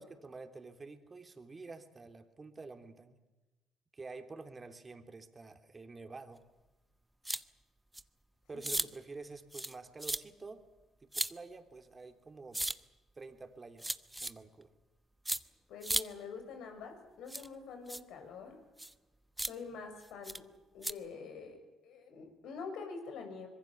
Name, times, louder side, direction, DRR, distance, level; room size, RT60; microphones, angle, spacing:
voice 1, 0.0-3.2 3.9-6.4 8.5-10.6 11.0-12.6 13.1-14.0 14.2-14.7, right 3 dB, 30° right, 6 dB, 3.2 m, -49 dB
sound 1, 7.2-7.4 7.9-8.0 8.6-8.9 9.5-9.7 10.0-10.2 11.1-11.3 12.5-12.7 13.8-14.3 15.3-15.4 15.8-16.0 17.3-17.5 17.9-18.0 18.8-18.9 19.4-19.5 20.2-20.4 20.8-20.9, right 1 dB, 10° right, 1.1 m, -35 dB
voice 2, 15.7-18.6 19.4-20.5 20.7-21.6 21.8-23.5, left 5 dB, 70° left, 5 dB, 6.2 m, -46 dB
25.0 x 22.0 x 7.1 m, 1.1 s
hypercardioid pair, 55°, 0 cm